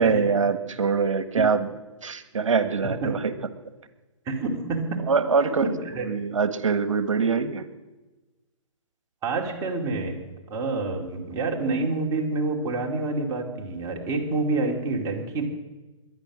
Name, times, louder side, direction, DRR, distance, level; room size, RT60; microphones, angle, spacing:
voice 1, 0.0-1.7 2.0-3.3 5.1-5.7 6.0-7.6, right 5 dB, 70° right, 10 dB, 1.5 m, -23 dB
voice 2, 4.2-5.0 5.6-6.1 9.2-10.2 10.5-15.4, right 3 dB, 20° right, 0 dB, 2.8 m, -27 dB
22.0 x 9.8 x 6.2 m, 1.2 s
figure-of-eight pair, 135°, 17 cm